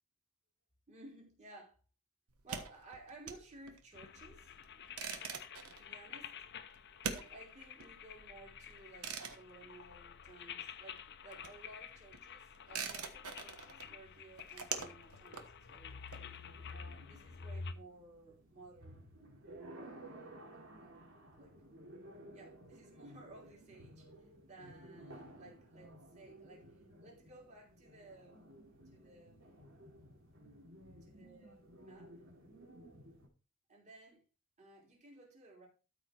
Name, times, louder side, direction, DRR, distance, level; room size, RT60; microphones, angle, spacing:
voice 1, 0.9-1.8 2.4-4.8 5.6-6.4 7.1-16.0 16.7-19.1 19.4-20.9 21.4-21.6 22.3-24.1 24.5-29.6 31.1-32.1 33.7-34.3 34.6-35.7, right 2 dB, 30° right, 3.4 m, -57 dB
sound 1, 2.3-10.7 10.9-16.7, right 6 dB, 85° right, 1.3 m, -45 dB
sound 2, 3.9-17.7, left 6 dB, 50° left, 0.7 m, -50 dB
sound 3, 16.1-33.3, right 1 dB, 60° right, 2.9 m, -56 dB
13.0 x 5.0 x 4.5 m
head